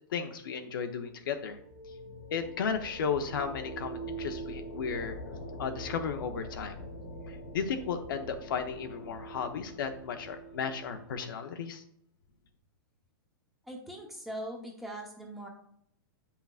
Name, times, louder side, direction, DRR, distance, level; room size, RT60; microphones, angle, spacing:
voice 1, 0.1-1.6 2.3-5.2 5.6-6.8 7.3-11.8, left 6 dB, 70° left, 6 dB, 0.8 m, -34 dB
sound 1, 0.9-11.5, right 1 dB, 50° left, 1.4 m, -44 dB
voice 2, 13.6-15.5, right 1 dB, ahead, 0 dB, 0.9 m, -41 dB
9.0 x 5.8 x 2.5 m, 0.69 s
hypercardioid pair, 160°, 12 cm